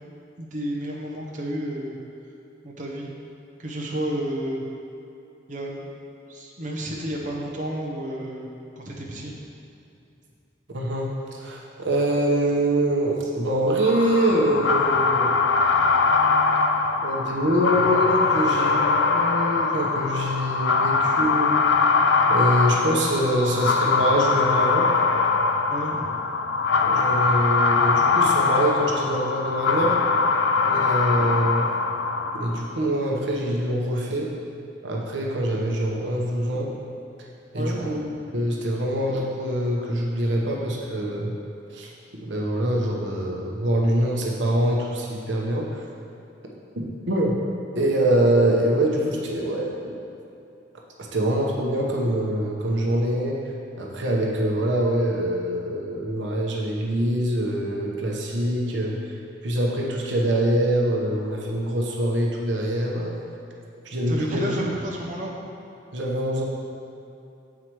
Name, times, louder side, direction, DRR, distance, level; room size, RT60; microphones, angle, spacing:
voice 1, 0.4-2.0 2.6-3.1 3.6-4.6 5.5-6.0 6.3-8.5 8.8-9.4 25.7-26.2 30.3-30.5 37.5-38.2 64.1-65.3, right 1 dB, 45° right, -3 dB, 0.9 m, -31 dB
voice 2, 10.7-15.4 17.0-21.5 22.3-24.9 26.8-30.0 30.6-31.7 32.3-34.3 34.8-36.7 37.5-38.0 38.3-41.3 41.7-41.9 42.2-45.8 46.8-47.4 47.8-49.8 51.0-53.4 53.8-58.9 59.4-63.2 63.8-64.5 65.9-66.4, right 1 dB, 80° right, -2 dB, 0.9 m, -24 dB
sound 1, 13.8-32.7, left 4 dB, 80° left, 0.5 m, -22 dB
7.7 x 4.7 x 4.6 m, 2.7 s
head